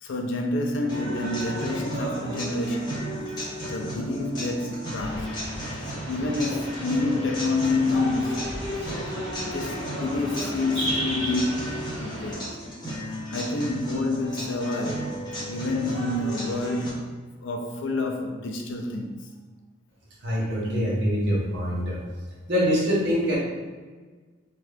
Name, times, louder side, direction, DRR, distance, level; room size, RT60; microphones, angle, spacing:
voice 1, 0.0-3.0 3.6-5.4 6.1-8.5 9.4-11.7 12.0-12.5 13.3-19.1, left 2 dB, 70° left, 0.4 m, -28 dB
sound 1, 0.9-16.9, equal, 20° left, 0.9 m, -34 dB
sound 2, 5.0-12.3, right 1 dB, ahead, 1.1 m, -35 dB
voice 2, 20.2-22.0 22.5-23.4, equal, 55° right, 0.9 m, -24 dB
2.8 x 2.3 x 3.3 m
head